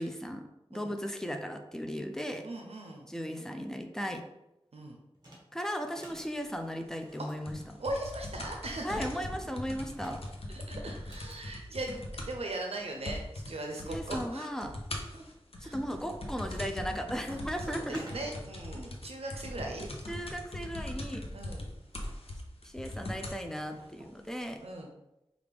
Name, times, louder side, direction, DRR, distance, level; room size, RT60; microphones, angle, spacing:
voice 1, 0.0-2.4 3.1-4.2 5.5-7.6 8.8-10.2 13.8-14.8 15.6-18.0 20.1-21.2 22.6-24.6, equal, 5° left, 5 dB, 0.5 m, -36 dB
voice 2, 2.4-3.1 4.7-5.0 7.2-7.3 7.8-9.0 10.5-14.5 15.1-15.2 15.6-16.0 17.3-17.4 17.7-19.9 21.3-21.7 24.6-24.9, right 2 dB, 80° right, 2 dB, 0.5 m, -39 dB
sound 1, 5.1-5.5 5.8-6.3 6.9-8.3 9.1-11.4 12.5-12.6 12.8-12.9 13.5-14.3 14.8-15.3 15.9-16.2 16.6-17.0 17.3-18.2 19.2-22.1 23.1-24.2, right 1 dB, 40° right, 1.5 m, -53 dB
sound 2, 7.5-12.5 12.7-12.8 13.1-13.5 13.8-14.3 14.6-23.4 24.2-24.3, left 1 dB, 70° left, 0.7 m, -40 dB
5.1 x 2.4 x 3.4 m, 0.90 s
wide cardioid pair, 60°, 10 cm